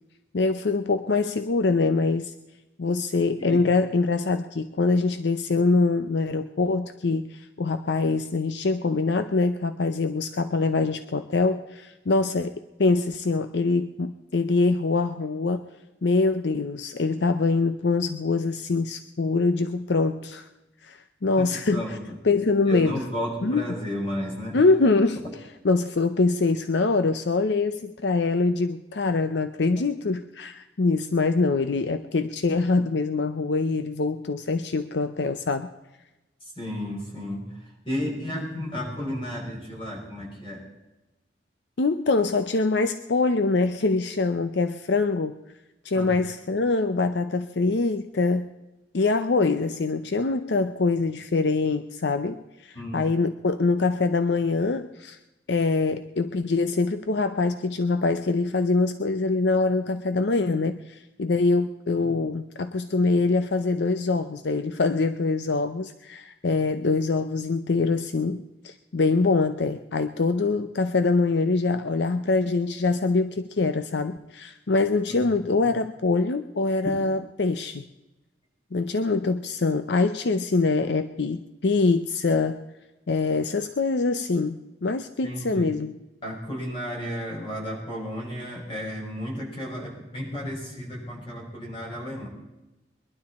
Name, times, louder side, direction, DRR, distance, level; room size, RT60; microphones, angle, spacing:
voice 1, 0.3-2.3 2.8-15.6 16.0-20.5 20.8-22.0 22.2-23.0 23.4-23.6 24.5-25.2 25.6-35.7 41.8-45.4 45.8-48.5 48.9-55.2 55.5-77.8 78.7-82.6 83.1-85.9, left 3 dB, 65° left, 10 dB, 0.6 m, -24 dB
voice 2, 21.4-22.2 22.7-24.6 36.4-37.6 37.8-40.6 45.9-46.1 52.7-53.0 75.1-75.2 75.6-75.7 85.2-85.7 86.2-92.3, equal, 30° left, -3 dB, 5.8 m, -33 dB
22.0 x 12.0 x 4.2 m, 1.0 s
head